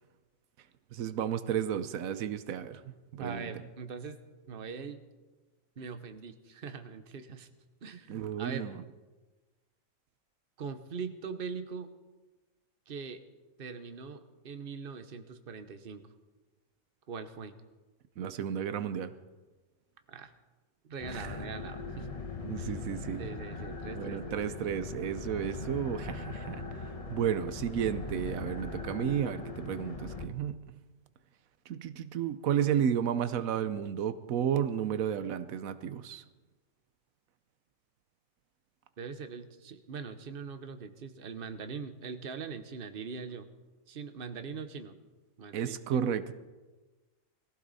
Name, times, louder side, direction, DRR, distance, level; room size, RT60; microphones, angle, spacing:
voice 1, 0.9-2.8 3.1-3.5 8.1-8.8 18.2-19.1 21.1-21.4 22.4-23.3 23.9-30.6 31.7-36.2 45.5-46.3, right 9 dB, 90° right, 12 dB, 1.2 m, -32 dB
voice 2, 3.2-4.2 4.5-5.0 5.8-7.5 7.8-8.7 10.6-11.9 12.9-13.2 13.6-16.0 17.1-17.5 20.1-20.3 20.8-22.1 22.6-22.8 23.2-24.6 39.0-43.5 43.9-45.0 45.4-46.1, right 5 dB, 45° right, 8 dB, 1.1 m, -42 dB
sound 1, 21.0-30.3, left 3 dB, 30° left, 1.0 m, -40 dB
21.0 x 15.5 x 4.1 m, 1.2 s
omnidirectional pair, 1.4 m